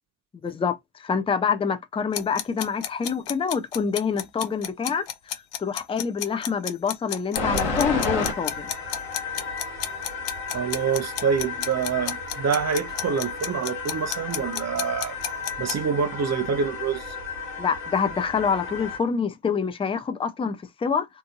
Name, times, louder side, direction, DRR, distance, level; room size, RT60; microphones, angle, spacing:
voice 1, 0.4-8.7 17.6-21.1, left 6 dB, 15° left, 0.4 m, -26 dB
sound 1, 2.1-15.8, left 11 dB, 60° left, 0.6 m, -32 dB
sound 2, 7.3-19.0, left 4 dB, 85° left, 0.9 m, -32 dB
voice 2, 10.5-15.2 15.6-17.2, right 6 dB, 35° right, 0.6 m, -26 dB
2.5 x 2.5 x 2.5 m
hypercardioid pair, 45°, 49 cm